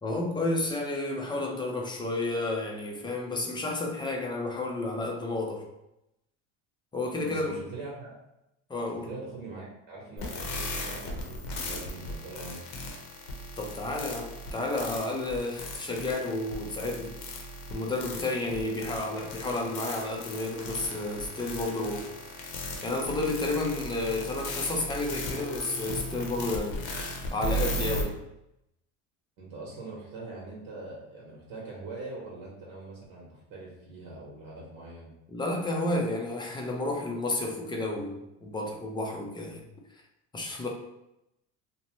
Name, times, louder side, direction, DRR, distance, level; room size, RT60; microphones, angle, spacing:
voice 1, 0.0-5.6 6.9-7.6 8.7-9.1 13.6-17.1 17.7-22.1 22.8-26.8 27.3-28.2 35.3-39.6 40.3-40.7, left 2 dB, 10° left, 1 dB, 0.5 m, -31 dB
voice 2, 7.2-8.1 8.9-12.6 18.3-18.9 29.4-35.1, right 3 dB, 60° right, -4 dB, 1.0 m, -43 dB
sound 1, 10.2-28.0, left 1 dB, 65° left, 0.8 m, -36 dB
2.7 x 2.1 x 2.9 m, 0.86 s
supercardioid pair, 100°, 39 cm